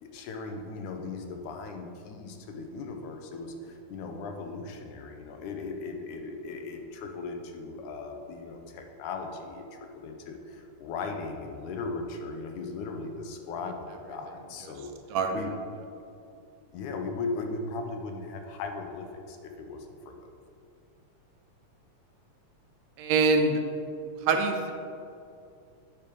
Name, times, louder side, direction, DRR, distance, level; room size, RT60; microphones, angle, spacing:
voice 1, 0.0-14.9 15.3-15.5 16.7-20.3, left 3 dB, 85° left, 4 dB, 2.2 m, -38 dB
voice 2, 15.1-15.4 23.0-23.6 24.2-24.7, right 4 dB, 75° right, 5 dB, 1.7 m, -24 dB
8.4 x 5.7 x 5.2 m, 2.5 s
omnidirectional pair, 3.5 m